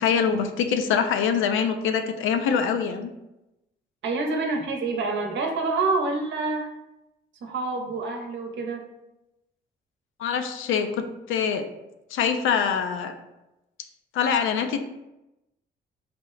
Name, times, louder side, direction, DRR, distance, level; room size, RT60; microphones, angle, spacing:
voice 1, 0.0-3.1 10.2-11.6 12.1-13.1 14.1-14.8, left 7 dB, 80° left, 7 dB, 0.5 m, -24 dB
voice 2, 4.0-6.7 7.4-8.8, right 3 dB, 70° right, 2 dB, 0.8 m, -27 dB
4.2 x 2.0 x 3.8 m, 0.94 s
cardioid pair, 90°, 20 cm